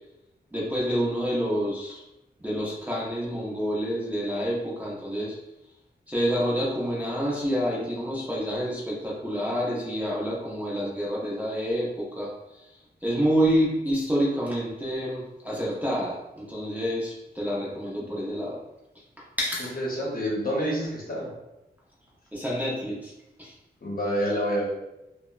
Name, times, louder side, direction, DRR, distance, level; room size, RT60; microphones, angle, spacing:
voice 1, 0.5-2.0 2.4-5.4 6.1-18.6 19.2-19.7 22.3-23.1 23.4-23.5, equal, 10° right, -6 dB, 0.5 m, -28 dB
voice 2, 19.7-21.3 23.8-24.7, equal, 55° left, -4 dB, 0.8 m, -27 dB
2.8 x 2.0 x 2.3 m, 0.93 s
wide cardioid pair, 135°, 18 cm